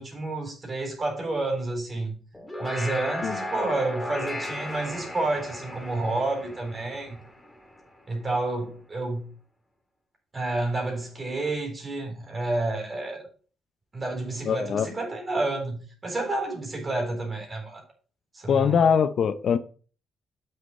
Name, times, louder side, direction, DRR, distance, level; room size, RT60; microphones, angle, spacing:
voice 1, 0.0-2.1 2.6-7.2 8.1-9.3 10.3-13.3 13.9-17.8 18.3-18.9, right 2 dB, 30° right, 3.8 m, -30 dB
sound 1, 2.3-7.9, left 1 dB, 10° left, 2.3 m, -35 dB
voice 2, 14.5-14.9 18.5-19.6, left 7 dB, 60° left, 0.6 m, -22 dB
7.5 x 6.7 x 4.2 m
cardioid pair, 90°, 0 cm